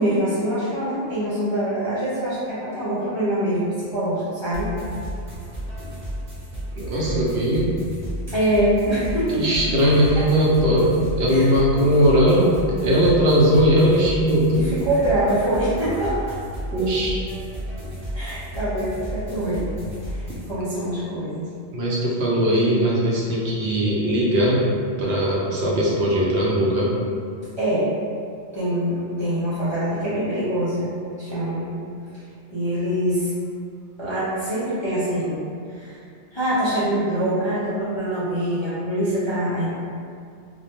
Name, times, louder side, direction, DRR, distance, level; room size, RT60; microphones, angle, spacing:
voice 1, 0.0-4.7 8.3-9.4 10.1-10.3 11.3-11.5 14.5-16.2 18.1-19.7 20.0-21.5 27.6-27.9 28.5-31.7 32.1-32.2 32.5-33.3 34.0-35.4 35.7-36.0 36.3-39.7, right 1 dB, 40° left, -13 dB, 0.4 m, -24 dB
sound 1, 4.5-20.5, equal, 35° right, 0.9 m, -32 dB
voice 2, 6.7-7.7 9.3-12.5 12.8-14.7 16.7-17.2 21.7-24.6 25.0-26.9, equal, 65° right, -5 dB, 0.7 m, -19 dB
2.2 x 2.1 x 2.9 m, 2.4 s
omnidirectional pair, 1.2 m